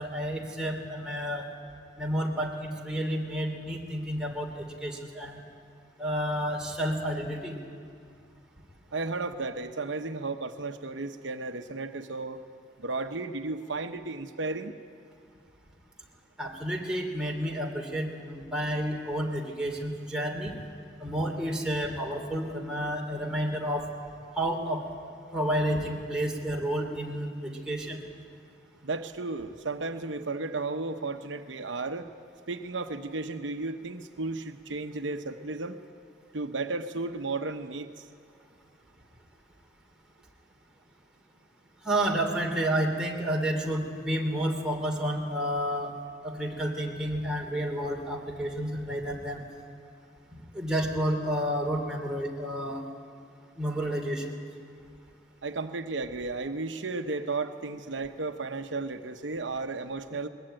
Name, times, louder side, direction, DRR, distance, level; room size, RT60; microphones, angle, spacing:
voice 1, 0.0-1.5 2.0-5.4 6.0-7.6 16.4-20.5 21.0-23.9 24.3-24.8 25.3-28.0 41.8-45.9 46.2-49.4 50.3-52.8 53.6-54.4, equal, 5° right, -2 dB, 2.8 m, -30 dB
voice 2, 8.9-12.4 12.8-14.8 28.8-32.1 32.5-35.8 36.3-38.1 55.4-60.3, right 3 dB, 80° right, 7 dB, 0.9 m, -34 dB
21.5 x 20.5 x 9.0 m, 2.4 s
head